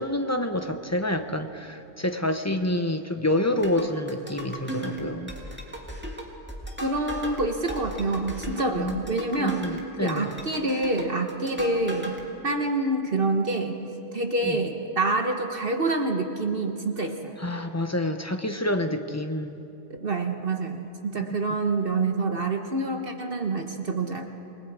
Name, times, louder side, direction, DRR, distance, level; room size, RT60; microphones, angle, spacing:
voice 1, 0.0-5.3 8.7-9.0 9.4-10.3 14.4-14.6 17.4-19.6, left 1 dB, 15° left, 6 dB, 0.8 m, -28 dB
sound 1, 3.6-12.2, right 1 dB, 10° right, 2.1 m, -37 dB
voice 2, 6.8-9.7 10.0-12.1 12.4-13.8 14.1-17.4 19.9-24.3, right 2 dB, 50° right, 4 dB, 1.3 m, -27 dB
28.0 x 20.5 x 4.8 m, 2.9 s
omnidirectional pair, 1.3 m